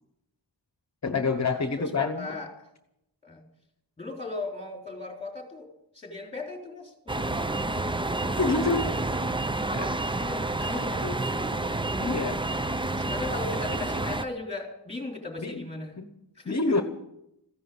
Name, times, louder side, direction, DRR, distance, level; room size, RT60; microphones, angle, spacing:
voice 1, 1.0-2.3 8.4-9.0 9.7-9.9 11.0-12.4 15.4-15.6 16.0-16.1 16.4-16.8, left 3 dB, 40° left, 8 dB, 1.1 m, -28 dB
voice 2, 1.8-2.5 3.2-3.4 4.0-7.6 10.1-11.2 13.0-16.0 16.4-16.8, left 3 dB, 15° left, 0 dB, 3.8 m, -37 dB
sound 1, 7.1-14.2, right 2 dB, 10° right, 0.5 m, -29 dB
15.0 x 11.0 x 7.8 m, 0.82 s
wide cardioid pair, 110°, 41 cm